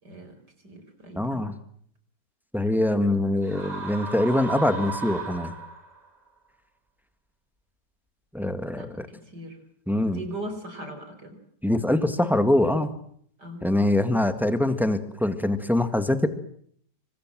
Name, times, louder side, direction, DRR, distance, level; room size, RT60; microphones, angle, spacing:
voice 1, 0.0-0.4 0.6-1.5 8.8-9.6 10.1-11.4 13.4-13.7, right 1 dB, 70° right, 8 dB, 5.5 m, -39 dB
voice 2, 1.2-1.5 2.5-5.5 8.3-9.1 9.9-10.2 11.6-12.9 13.6-16.3, left 1 dB, ahead, 9 dB, 1.9 m, -23 dB
sound 1, 3.4-6.1, right 4 dB, 20° right, 4.5 m, -35 dB
27.5 x 25.0 x 7.7 m, 0.64 s
omnidirectional pair, 1.8 m